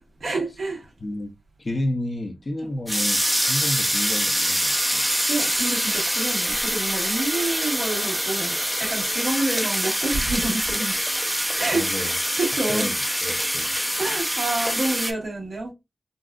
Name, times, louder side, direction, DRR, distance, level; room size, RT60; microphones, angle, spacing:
voice 1, 0.2-0.8 5.3-11.0 11.6-12.1 12.4-12.9 14.0-15.7, right 2 dB, 85° right, 1.7 m, -28 dB
voice 2, 1.0-1.3 1.6-3.2 3.5-5.1 11.7-12.2 12.7-13.7, left 1 dB, 50° left, 0.7 m, -31 dB
sound 1, 2.9-15.1, equal, 5° right, 0.6 m, -25 dB
3.9 x 2.4 x 2.3 m
cardioid pair, 45°, 0 cm